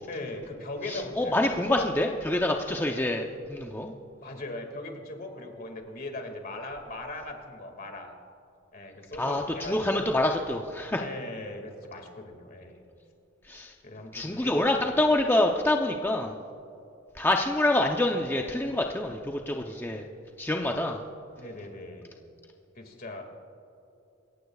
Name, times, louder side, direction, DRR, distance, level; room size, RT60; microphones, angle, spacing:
voice 1, 0.1-1.9 4.2-8.1 8.7-10.1 11.0-12.8 13.8-14.9 21.4-22.2 22.8-23.2, left 2 dB, 50° left, 4 dB, 2.1 m, -39 dB
voice 2, 0.9-3.9 9.2-11.0 13.5-13.7 14.1-16.3 17.2-20.0 20.4-21.0, left 1 dB, 10° left, 2 dB, 0.6 m, -26 dB
27.5 x 15.0 x 2.4 m, 2.8 s
head